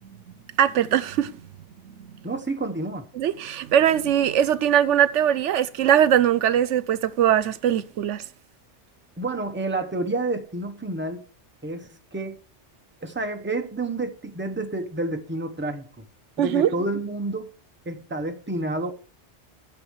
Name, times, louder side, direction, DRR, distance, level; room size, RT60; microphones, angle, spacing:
voice 1, 0.6-1.4 2.0-2.1 3.1-8.2 16.4-16.7, right 10 dB, 85° right, 1.0 m, -21 dB
voice 2, 2.2-3.1 9.2-11.2 11.6-12.4 13.0-16.0 16.4-17.5 17.8-18.9, right 2 dB, 10° right, 0.9 m, -29 dB
9.3 x 6.8 x 6.4 m
omnidirectional pair, 1.2 m